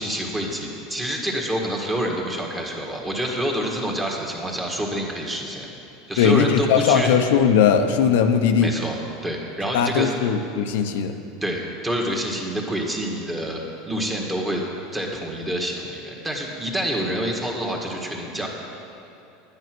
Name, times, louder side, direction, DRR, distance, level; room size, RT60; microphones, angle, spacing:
voice 1, 0.0-5.7 6.1-7.1 8.6-10.1 11.4-13.6 13.9-14.6 14.9-18.5, equal, 10° right, 0 dB, 1.7 m, -27 dB
voice 2, 6.2-8.7 9.7-11.1, left 7 dB, 80° left, 6 dB, 0.8 m, -19 dB
10.5 x 9.7 x 6.1 m, 2.8 s
supercardioid pair, 140°, 0 cm